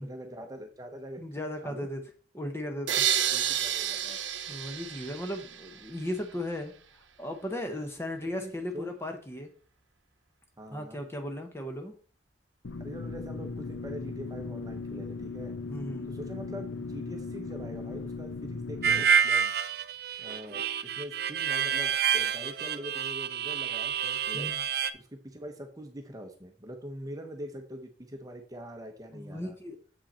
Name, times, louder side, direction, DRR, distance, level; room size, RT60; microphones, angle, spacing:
voice 1, 0.0-1.2 1.6-1.9 3.3-4.2 8.2-8.9 10.6-11.0 12.8-15.5 16.1-19.5 20.2-24.5 24.9-29.6, equal, 20° right, 4 dB, 0.9 m, -43 dB
voice 2, 1.2-2.0 2.3-3.0 4.5-6.7 7.2-9.5 10.7-11.9 15.7-16.1 24.3-24.6 29.1-29.8, left 1 dB, 15° left, 5 dB, 0.9 m, -36 dB
sound 1, 2.9-5.9, right 10 dB, 90° right, 0.8 m, -30 dB
sound 2, 12.6-19.0, left 4 dB, 90° left, 0.6 m, -38 dB
Harmonica, 18.8-24.9, right 7 dB, 55° right, 0.5 m, -28 dB
7.4 x 5.4 x 4.3 m, 0.41 s
head